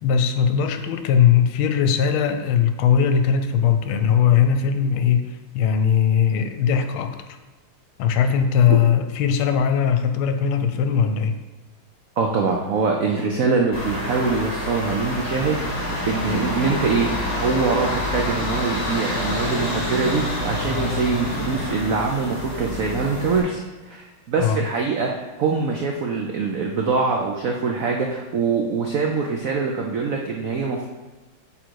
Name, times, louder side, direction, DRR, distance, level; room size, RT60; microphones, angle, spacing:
voice 1, 0.0-7.2 8.0-11.4 24.4-24.6, left 7 dB, 80° left, 8 dB, 1.5 m, -19 dB
voice 2, 12.2-17.1 17.4-25.1 25.4-30.9, right 4 dB, 90° right, 1 dB, 0.7 m, -24 dB
sound 1, 13.7-23.4, left 1 dB, 30° left, 1.7 m, -27 dB
8.6 x 3.8 x 4.6 m, 1.2 s
omnidirectional pair, 2.3 m